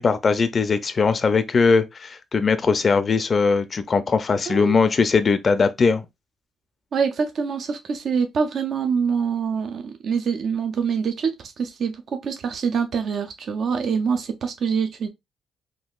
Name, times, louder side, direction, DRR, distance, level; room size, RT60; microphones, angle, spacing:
voice 1, 0.0-6.0, left 5 dB, 40° left, 0.4 m, -20 dB
voice 2, 6.9-15.1, right 6 dB, 60° right, 0.4 m, -25 dB
3.6 x 2.3 x 2.3 m
cardioid pair, 90°, 0 cm